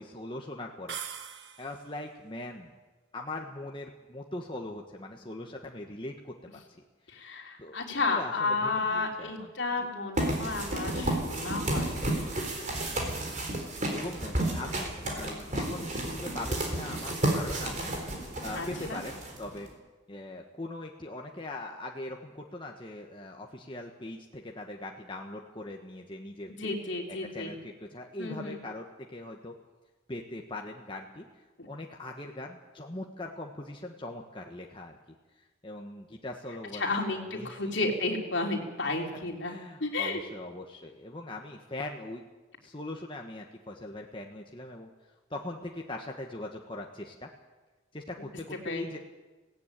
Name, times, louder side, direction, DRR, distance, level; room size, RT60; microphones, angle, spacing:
voice 1, 0.0-2.7 3.1-6.6 7.1-9.5 12.9-13.0 13.9-17.9 18.4-19.7 20.1-26.7 27.1-29.5 30.1-31.3 31.7-35.0 35.4-36.9 37.3-37.7 39.5-42.2 42.6-44.9 45.3-47.3 47.9-49.0, left 2 dB, 25° left, 1 dB, 1.4 m, -41 dB
sound 1, 0.9-2.0, right 7 dB, 60° right, 1.5 m, -41 dB
voice 2, 7.1-12.3 18.5-19.0 26.6-27.5 28.2-28.6 31.6-31.7 36.8-39.5 39.8-40.2 48.6-49.0, left 3 dB, 65° left, 1 dB, 3.3 m, -32 dB
sound 2, 10.2-19.7, right 1 dB, 35° right, 4.0 m, -32 dB
17.0 x 16.5 x 9.1 m, 1.2 s
head